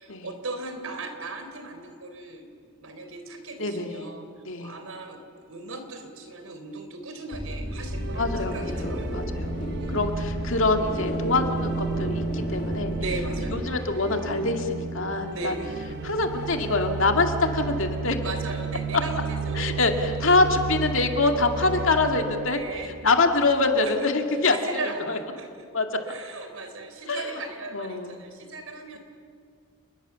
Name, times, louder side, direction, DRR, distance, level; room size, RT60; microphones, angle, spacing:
voice 1, 0.0-2.5 2.8-4.3 4.6-5.2 5.5-9.2 9.8-10.0 12.9-13.6 15.3-15.8 18.2-19.8 22.5-22.9 23.8-24.1 24.5-25.8 26.1-29.0, right 2 dB, 80° right, 6 dB, 3.8 m, -37 dB
voice 2, 3.6-4.1 4.4-4.7 8.1-9.6 9.9-13.0 13.5-15.6 16.0-18.2 19.5-24.6 25.1-25.2 25.7-25.9 27.1-27.3 27.7-28.2, left 3 dB, 65° left, 4 dB, 2.3 m, -25 dB
sound 1, 7.3-13.6, equal, 35° left, 2.6 m, -33 dB
sound 2, 7.7-23.8, right 4 dB, 55° right, 1.1 m, -33 dB
29.5 x 21.0 x 7.1 m, 2.3 s
head